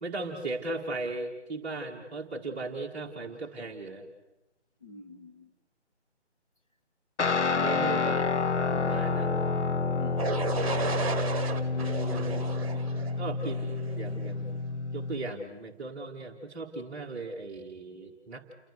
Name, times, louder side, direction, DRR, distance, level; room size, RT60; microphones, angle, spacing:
voice 1, 0.0-4.1 7.6-8.2 8.7-9.3 12.1-12.4 12.9-14.6 14.9-18.5, right 3 dB, 10° right, 1.8 m, -37 dB
voice 2, 4.8-5.5 9.7-10.4 11.7-12.5, left 4 dB, 30° left, 1.4 m, -45 dB
Guitar, 7.2-15.3, left 4 dB, 80° left, 0.8 m, -29 dB
sound 1, 10.2-14.1, right 4 dB, 30° right, 1.7 m, -33 dB
29.5 x 22.0 x 6.4 m
figure-of-eight pair, 155°, 35 cm